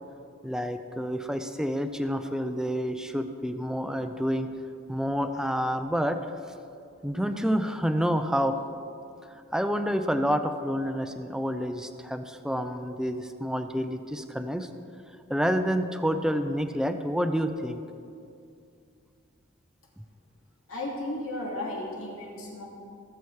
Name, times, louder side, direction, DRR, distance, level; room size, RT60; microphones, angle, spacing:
voice 1, 0.4-4.5 4.9-6.2 7.0-8.6 9.5-14.7 15.3-17.8, equal, 5° right, 8 dB, 0.5 m, -28 dB
voice 2, 20.7-22.6, left 1 dB, 90° left, -2 dB, 2.6 m, -34 dB
17.5 x 7.0 x 4.7 m, 2.5 s
head